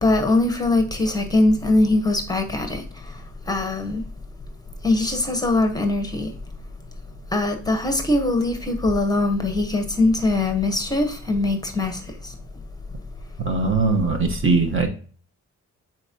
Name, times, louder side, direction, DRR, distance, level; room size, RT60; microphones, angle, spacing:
voice 1, 0.0-2.8 3.5-4.0 4.8-6.3 7.3-12.0, left 2 dB, 10° left, 6 dB, 1.0 m, -21 dB
voice 2, 13.4-14.9, right 4 dB, 40° right, 4 dB, 1.2 m, -20 dB
9.7 x 4.5 x 2.8 m, 0.42 s
wide cardioid pair, 135°, 31 cm